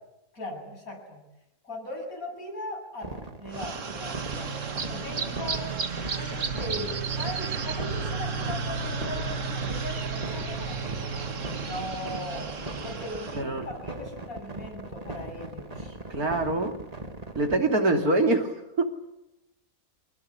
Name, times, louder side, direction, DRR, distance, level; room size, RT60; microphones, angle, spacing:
voice 1, 0.3-1.2 1.6-12.5 12.8-16.0, left 1 dB, 75° left, 2 dB, 8.5 m, -39 dB
sound 1, 3.0-17.6, right 2 dB, 25° right, 2.2 m, -39 dB
sound 2, 3.5-13.4, right 5 dB, 60° right, 1.9 m, -33 dB
voice 2, 16.1-16.7 17.4-18.9, right 2 dB, 90° right, 5 dB, 3.4 m, -24 dB
26.0 x 19.5 x 9.9 m, 0.89 s
omnidirectional pair, 1.5 m